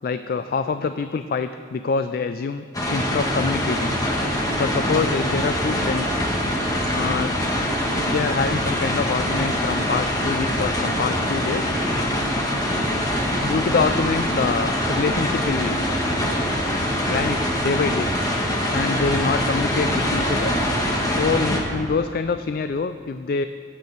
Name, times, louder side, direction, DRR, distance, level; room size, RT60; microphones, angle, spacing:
voice 1, 0.0-3.9 4.6-6.2 6.9-7.4 8.0-11.7 12.4-12.5 13.4-15.8 17.1-18.1 18.7-20.6 21.1-23.5, left 4 dB, 55° left, 10 dB, 0.3 m, -25 dB
rain caravan, 2.7-21.6, equal, 20° left, 1.4 m, -23 dB
18.0 x 8.6 x 4.0 m, 2.6 s
head